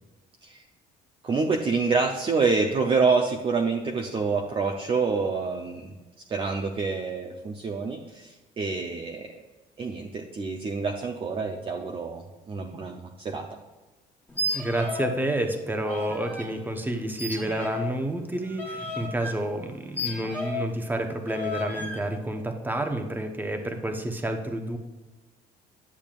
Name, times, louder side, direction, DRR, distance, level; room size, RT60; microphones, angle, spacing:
voice 1, 1.2-5.9 6.3-9.3 9.8-13.5, right 4 dB, 35° right, 2 dB, 0.7 m, -27 dB
sound 1, 14.3-15.2 15.4-16.5 17.2-20.8 21.3-22.0, left 2 dB, 10° left, 1.6 m, -33 dB
voice 2, 14.5-24.8, right 1 dB, 10° right, 4 dB, 1.0 m, -29 dB
10.5 x 7.1 x 2.5 m, 1.2 s
cardioid pair, 110°, 17 cm